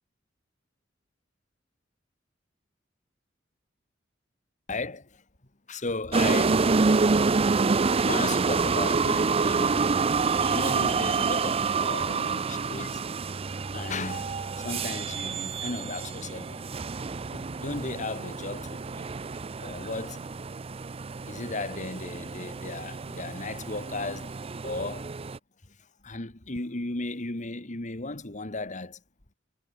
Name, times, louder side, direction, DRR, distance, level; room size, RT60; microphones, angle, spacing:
voice 1, 4.7-5.2 5.7-6.9 7.2-7.3 8.0-9.9 10.5-13.0 13.7-16.7 17.3-19.1 19.6-20.2 21.3-24.4 24.6-25.1 26.0-29.0, left 3 dB, 40° left, 2.0 m, -35 dB
sound 1, 6.1-25.4, right 4 dB, 30° right, 0.5 m, -27 dB
head